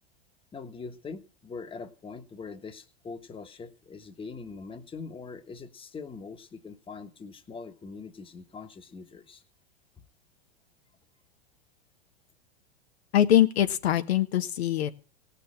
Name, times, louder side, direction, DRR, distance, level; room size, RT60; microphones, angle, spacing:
voice 1, 0.5-9.4, left 4 dB, 15° left, 8 dB, 1.4 m, -42 dB
voice 2, 13.1-14.9, left 11 dB, 75° left, 7 dB, 1.4 m, -23 dB
17.5 x 6.8 x 8.7 m, 0.39 s
hypercardioid pair, 105°, 32 cm